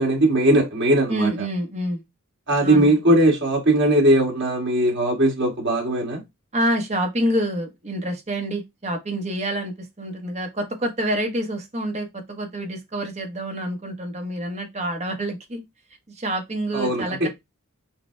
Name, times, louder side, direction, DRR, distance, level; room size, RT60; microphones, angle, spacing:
voice 1, 0.0-1.3 2.5-6.2 16.7-17.3, right 1 dB, 50° right, 1.9 m, -19 dB
voice 2, 1.1-2.0 2.6-3.0 6.5-15.6 16.1-17.3, right 1 dB, 30° right, 1.0 m, -27 dB
5.6 x 2.2 x 3.3 m
head